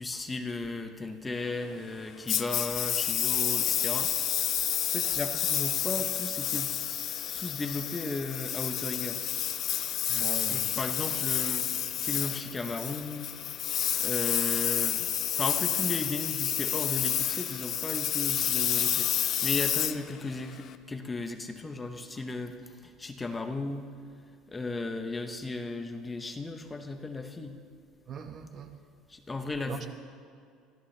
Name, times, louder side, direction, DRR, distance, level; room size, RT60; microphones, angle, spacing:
voice 1, 0.0-6.7 7.3-9.2 10.5-11.7 12.0-13.3 14.0-19.1 19.4-23.9 24.5-27.6 29.1-29.9, left 3 dB, 10° left, 5 dB, 0.8 m, -35 dB
Engine, 2.3-20.7, left 10 dB, 35° left, 0.6 m, -30 dB
voice 2, 10.1-10.8 28.1-28.7 29.7-29.9, right 6 dB, 30° right, 7 dB, 0.9 m, -40 dB
24.0 x 16.0 x 3.3 m, 2.4 s
cardioid pair, 165°, 0 cm